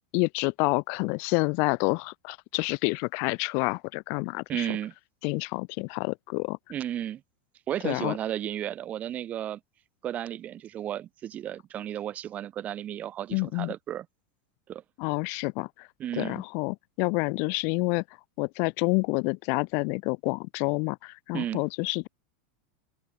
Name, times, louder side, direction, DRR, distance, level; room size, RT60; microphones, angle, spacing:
voice 1, 0.0-4.8 5.2-6.6 7.8-8.1 13.3-13.7 15.0-15.7 16.2-18.0 18.4-22.1, left 35 dB, 55° left, 2.9 m, -28 dB
voice 2, 4.5-4.9 6.7-7.2 7.7-9.6 10.0-14.1 14.7-14.8 16.0-16.4 21.3-21.6, right 11 dB, 30° right, 5.3 m, -33 dB
supercardioid pair, 135°, 5 cm